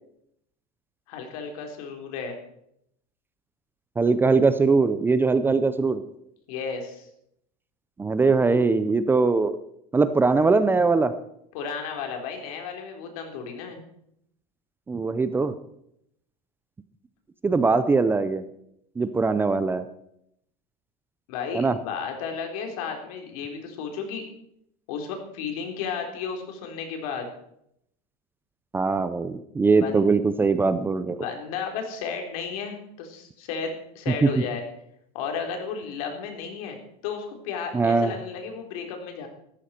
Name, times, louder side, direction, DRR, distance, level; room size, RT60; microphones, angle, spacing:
voice 1, 1.1-2.4 6.5-7.1 11.5-13.8 21.3-24.2 24.9-27.3 29.8-30.0 31.2-34.6 35.1-39.3, left 6 dB, 75° left, 3 dB, 3.8 m, -33 dB
voice 2, 4.0-6.0 8.0-9.6 9.9-11.1 14.9-15.5 17.4-18.4 19.0-19.9 21.5-21.8 28.7-31.2 34.2-34.3 37.7-38.1, right 4 dB, 10° right, 12 dB, 0.6 m, -21 dB
16.0 x 13.5 x 4.4 m, 0.75 s
supercardioid pair, 150°, 19 cm